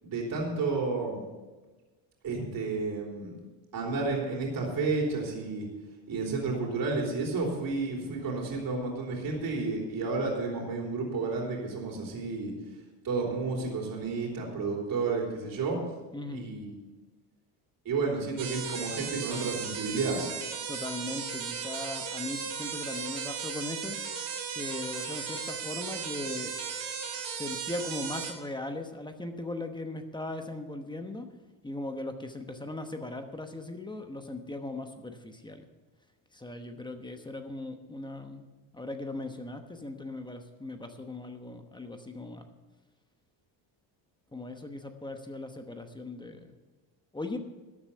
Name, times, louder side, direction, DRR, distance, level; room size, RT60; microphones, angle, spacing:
voice 1, 0.0-1.2 2.2-3.3 3.7-5.7 6.1-12.5 13.0-15.8 16.3-16.8 17.9-20.3, right 3 dB, 50° right, -1 dB, 3.5 m, -31 dB
voice 2, 16.1-16.5 20.7-24.0 24.5-26.5 27.3-31.3 31.6-35.6 36.3-42.5 44.3-46.5 47.1-47.4, left 2 dB, 10° left, 6 dB, 1.0 m, -38 dB
sound 1, 18.4-28.3, right 6 dB, 80° right, 2.8 m, -36 dB
12.5 x 8.1 x 6.8 m, 1.2 s
cardioid pair, 125°, 45 cm